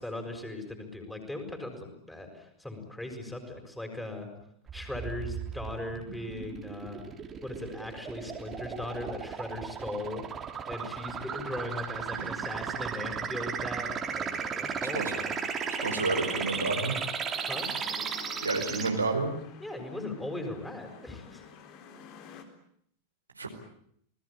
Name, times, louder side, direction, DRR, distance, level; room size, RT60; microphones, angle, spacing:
voice 1, 0.0-4.3 4.7-7.0 7.4-10.2 10.7-15.3 17.5-17.7 19.6-21.4, left 2 dB, 5° left, 4 dB, 6.6 m, -38 dB
sound 1, 4.7-18.9, right 7 dB, 25° right, 3.5 m, -35 dB
sound 2, 14.0-22.4, left 7 dB, 40° left, 4.0 m, -48 dB
voice 2, 15.8-16.9 18.4-19.3 23.3-23.5, right 3 dB, 80° right, 3 dB, 4.7 m, -30 dB
29.5 x 20.5 x 8.7 m, 0.68 s
figure-of-eight pair, 90°, 0 cm